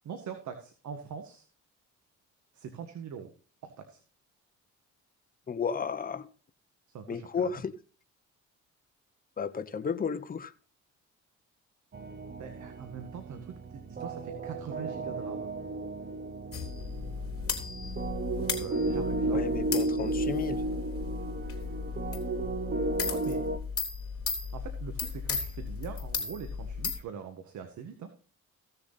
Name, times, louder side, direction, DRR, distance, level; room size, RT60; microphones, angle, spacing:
voice 1, 0.0-1.5 2.5-3.3 3.6-4.0 6.9-7.6 12.4-15.5 18.4-19.5 23.1-23.4 24.5-28.1, right 7 dB, 70° right, 6 dB, 1.7 m, -42 dB
voice 2, 5.5-6.3 7.1-7.7 9.4-10.5 19.3-20.6, left 6 dB, 30° left, 10 dB, 0.9 m, -33 dB
sound 1, 11.9-23.6, right 2 dB, 35° right, 1.1 m, -34 dB
sound 2, 16.5-27.0, left 5 dB, 45° left, 3.3 m, -36 dB
16.0 x 6.9 x 4.1 m, 0.37 s
cardioid pair, 90°, 30 cm